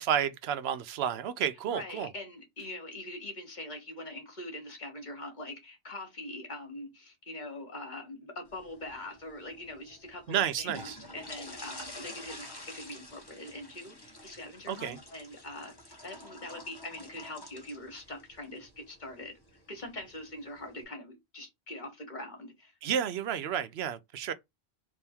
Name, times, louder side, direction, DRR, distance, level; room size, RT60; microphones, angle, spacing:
voice 1, 0.0-2.1 10.3-11.0 14.7-15.0 22.8-24.3, right 9 dB, 75° right, 0.8 m, -31 dB
voice 2, 1.7-15.7 16.0-19.4 19.7-22.7, left 1 dB, 45° left, 1.5 m, -43 dB
sound 1, 8.5-20.8, left 1 dB, 25° left, 1.1 m, -49 dB
3.5 x 3.0 x 4.3 m
omnidirectional pair, 1.1 m